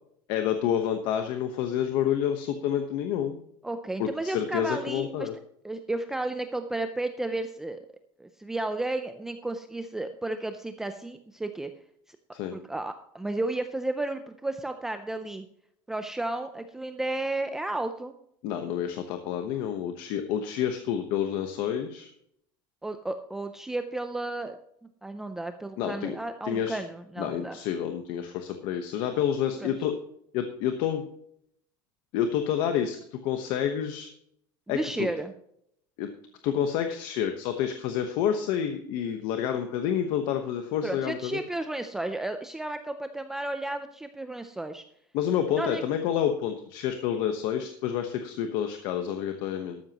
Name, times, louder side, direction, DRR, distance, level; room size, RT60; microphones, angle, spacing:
voice 1, 0.3-3.4 4.0-5.3 12.3-12.5 18.4-22.1 25.8-26.2 26.4-26.8 27.2-30.0 30.3-31.1 32.1-34.1 34.7-35.1 36.0-36.1 36.4-41.4 45.1-49.8, left 9 dB, 45° left, 7 dB, 1.1 m, -29 dB
voice 2, 3.6-5.3 5.6-7.8 8.2-11.7 12.1-12.2 12.5-15.4 15.9-18.1 22.8-24.6 25.0-27.6 29.6-29.7 34.7-35.3 40.8-44.8 45.5-45.8, right 2 dB, 5° right, 8 dB, 0.5 m, -33 dB
13.0 x 13.0 x 3.0 m, 0.70 s
cardioid pair, 180°, 10 cm